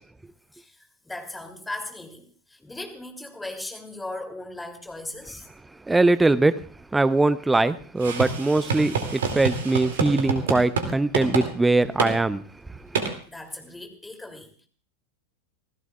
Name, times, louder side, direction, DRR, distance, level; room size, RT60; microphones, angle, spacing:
voice 1, 1.0-5.5 13.3-14.7, left 2 dB, 5° left, 3.0 m, -38 dB
voice 2, 5.9-6.6 6.9-12.4, right 2 dB, 10° right, 0.7 m, -21 dB
sound 1, 8.0-10.9 11.1-11.5 12.0-12.1 12.9-13.1, right 5 dB, 60° right, 2.5 m, -27 dB
26.0 x 16.0 x 2.4 m
figure-of-eight pair, 90°, 0 cm